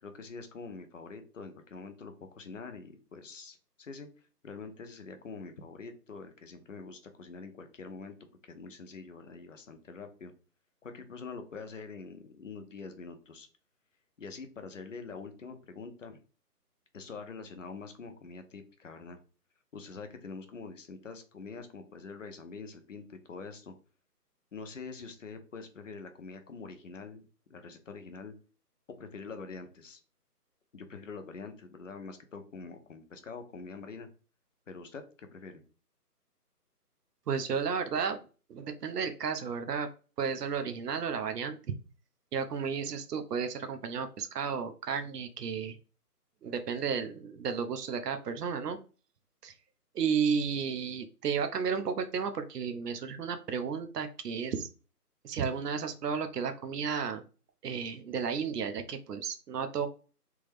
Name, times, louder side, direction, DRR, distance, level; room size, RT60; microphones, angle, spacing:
voice 1, 0.0-4.1 4.4-8.1 8.4-10.3 10.8-13.5 14.2-16.2 16.9-19.2 19.7-23.7 24.5-28.3 29.0-30.0 30.7-34.1 34.7-35.6, left 4 dB, 55° left, 7 dB, 0.6 m, -45 dB
voice 2, 37.3-38.2 38.5-39.9 40.2-41.7 42.3-45.7 46.4-48.8 49.4-49.5 49.9-54.7 55.2-57.2 57.6-59.9, right 6 dB, 80° right, 8 dB, 0.6 m, -33 dB
3.4 x 2.0 x 3.2 m, 0.36 s
hypercardioid pair, 170°, 48 cm